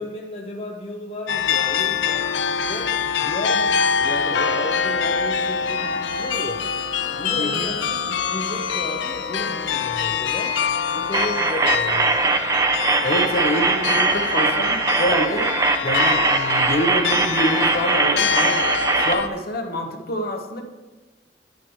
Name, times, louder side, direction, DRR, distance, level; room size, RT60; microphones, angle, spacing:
voice 1, 0.0-2.2 2.7-6.7 7.2-10.6 10.9-12.4, left 1 dB, 35° left, 0 dB, 0.7 m, -33 dB
sound 1, 1.3-19.3, left 6 dB, 80° left, 0.5 m, -25 dB
voice 2, 7.4-7.7 13.0-15.5 15.8-18.6 18.9-20.6, equal, 55° left, 4 dB, 1.0 m, -26 dB
sound 2, 11.1-19.1, right 3 dB, 20° right, 0.3 m, -21 dB
10.0 x 9.4 x 3.1 m, 1.2 s
head